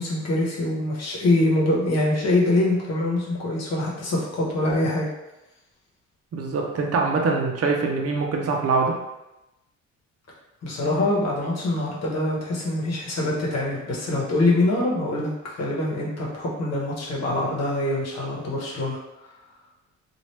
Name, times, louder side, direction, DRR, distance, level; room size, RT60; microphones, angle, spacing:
voice 1, 0.0-5.1 10.6-19.0, left 2 dB, 60° left, -4 dB, 1.0 m, -24 dB
voice 2, 6.3-9.0, right 4 dB, 50° right, 0 dB, 0.7 m, -23 dB
3.0 x 2.5 x 3.1 m, 0.96 s
cardioid pair, 90°, 30 cm